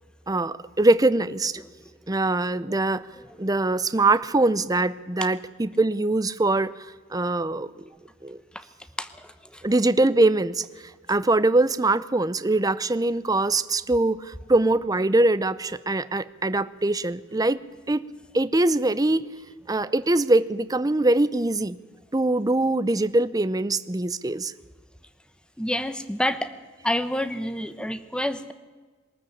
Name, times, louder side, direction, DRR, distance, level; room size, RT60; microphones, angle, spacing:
voice 1, 0.3-1.5 2.1-3.1 3.4-6.7 7.1-7.7 8.2-8.4 9.6-10.6 11.1-17.6 17.9-18.0 18.3-19.2 19.7-21.8 22.1-24.5, right 2 dB, 20° right, 15 dB, 0.6 m, -22 dB
voice 2, 9.0-9.6 25.6-26.5 26.8-28.5, left 1 dB, 5° left, 12 dB, 1.0 m, -28 dB
22.5 x 13.5 x 8.6 m, 1.4 s
head